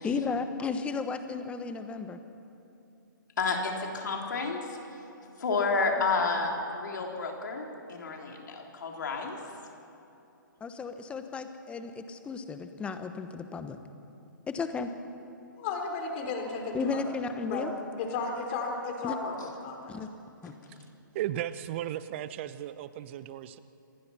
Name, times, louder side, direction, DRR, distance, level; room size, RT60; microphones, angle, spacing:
voice 1, 0.0-2.2 10.6-13.8 14.5-14.9 16.7-17.7 19.0-19.1 19.9-20.1 20.4-20.6, left 5 dB, 10° left, 9 dB, 1.1 m, -34 dB
voice 2, 3.4-5.0 5.4-9.4 20.4-20.7, left 4 dB, 60° left, 1 dB, 3.6 m, -31 dB
voice 3, 15.6-17.0 17.5-17.7 18.0-20.0, left 4 dB, 35° left, 2 dB, 4.1 m, -34 dB
voice 4, 21.1-23.6, right 12 dB, 35° right, 14 dB, 0.8 m, -35 dB
27.0 x 19.5 x 5.8 m, 2.8 s
figure-of-eight pair, 135°, 11 cm